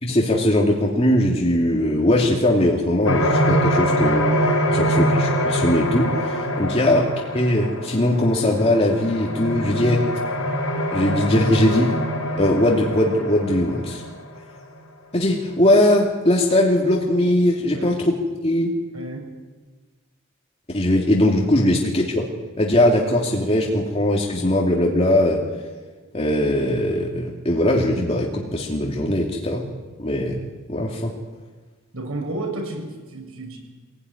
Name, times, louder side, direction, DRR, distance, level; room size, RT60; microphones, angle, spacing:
voice 1, 0.0-4.2 4.7-7.0 7.3-10.0 10.9-11.9 12.4-14.0 15.1-18.1 18.4-18.7 20.7-22.2 22.6-25.4 26.1-29.6 30.0-30.4 30.7-31.1, left 1 dB, 30° left, -2 dB, 2.7 m, -20 dB
sound 1, 3.0-14.5, equal, 85° left, 4.9 m, -24 dB
voice 2, 4.6-5.1 6.6-6.9 17.7-17.9 18.9-19.3 31.9-33.6, right 2 dB, 80° right, 2 dB, 7.5 m, -32 dB
24.0 x 17.5 x 9.9 m, 1.3 s
head